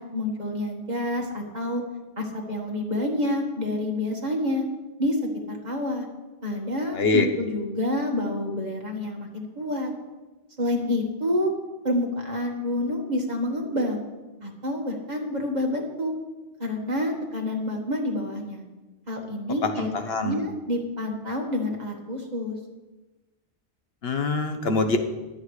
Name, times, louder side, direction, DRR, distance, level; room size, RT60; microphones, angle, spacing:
voice 1, 0.0-1.8 2.2-4.6 5.0-5.2 5.5-6.1 6.4-9.9 10.6-11.5 11.8-14.0 14.4-16.1 16.6-18.7 19.1-19.9 20.2-22.6, left 1 dB, 40° right, 0 dB, 1.8 m, -28 dB
voice 2, 6.9-7.3 19.6-20.4 24.0-25.0, left 3 dB, 60° left, 6 dB, 1.3 m, -24 dB
23.5 x 8.0 x 3.3 m, 1.2 s
omnidirectional pair, 1.2 m